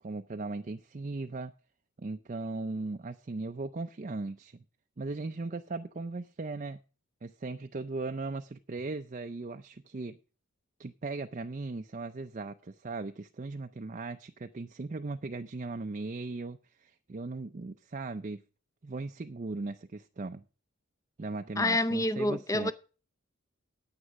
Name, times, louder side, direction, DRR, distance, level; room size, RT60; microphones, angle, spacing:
voice 1, 0.0-1.5 2.0-4.6 5.0-6.8 7.2-10.2 10.8-18.4 18.8-20.4 21.2-22.7, right 3 dB, 35° right, 0.5 m, -38 dB
voice 2, 21.6-22.7, left 1 dB, 15° left, 0.5 m, -28 dB
9.6 x 9.0 x 6.2 m
head